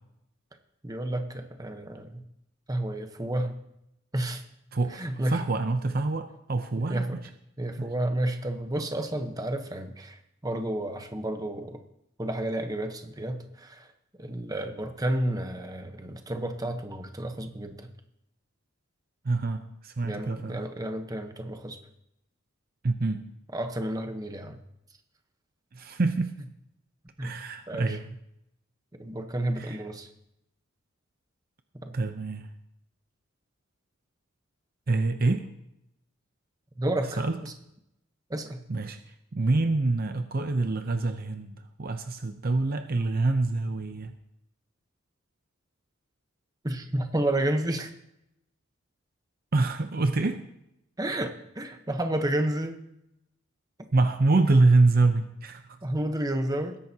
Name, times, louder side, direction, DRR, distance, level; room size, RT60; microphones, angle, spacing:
voice 1, 0.8-2.2 2.7-3.5 4.1-4.4 4.9-5.4 6.8-7.2 7.6-11.8 12.2-13.9 14.2-17.9 20.0-21.8 23.5-24.6 27.2-27.3 27.7-28.0 29.0-30.1 31.8-31.9 36.8-37.5 38.3-38.6 46.6-47.9 51.0-52.8 55.8-56.8, right 1 dB, 20° right, 6 dB, 1.0 m, -31 dB
voice 2, 4.7-7.2 7.8-7.9 19.2-20.6 22.8-23.3 25.7-26.3 27.2-28.2 29.5-29.8 31.9-32.5 34.9-35.5 37.2-37.4 38.7-44.1 49.5-50.4 53.9-55.8, right 3 dB, 45° right, 8 dB, 0.7 m, -26 dB
20.0 x 10.5 x 2.8 m, 0.82 s
head